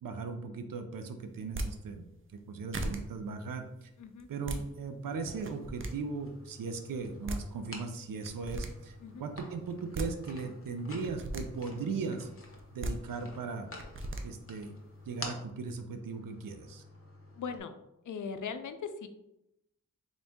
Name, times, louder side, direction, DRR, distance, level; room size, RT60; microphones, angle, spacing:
voice 1, 0.0-2.0 2.3-3.9 4.3-12.3 12.7-13.7 14.2-14.7 15.1-16.8, right 4 dB, 90° right, 7 dB, 0.5 m, -38 dB
sound 1, 1.4-1.7 2.4-2.5 2.7-3.0 4.2-4.6 5.3-5.9 7.0-7.1 7.3-7.4 8.2-8.7 9.7-10.1 11.0-11.4 12.6-12.9 13.8-14.2, right 2 dB, 40° right, 0.5 m, -36 dB
sound 2, 5.1-17.6, left 2 dB, 45° left, 0.8 m, -50 dB
voice 2, 17.4-17.8 18.1-19.1, left 6 dB, 65° left, 9 dB, 0.5 m, -39 dB
3.9 x 2.6 x 3.5 m, 0.86 s
wide cardioid pair, 65°, 32 cm